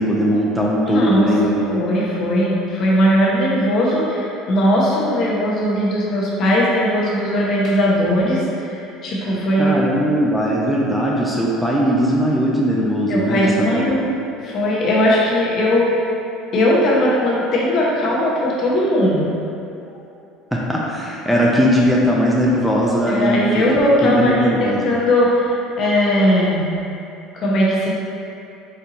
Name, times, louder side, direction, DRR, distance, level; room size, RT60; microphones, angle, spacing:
voice 1, 0.0-1.7 9.6-14.0 20.5-23.6 24.0-24.9, equal, ahead, -4 dB, 0.5 m, -19 dB
voice 2, 0.9-1.3 1.7-9.7 13.1-14.1 14.4-16.0 16.5-19.3 23.1-26.7 27.3-27.9, equal, 50° left, -4 dB, 1.0 m, -18 dB
4.4 x 2.6 x 3.9 m, 2.6 s
supercardioid pair, 105°, 0 cm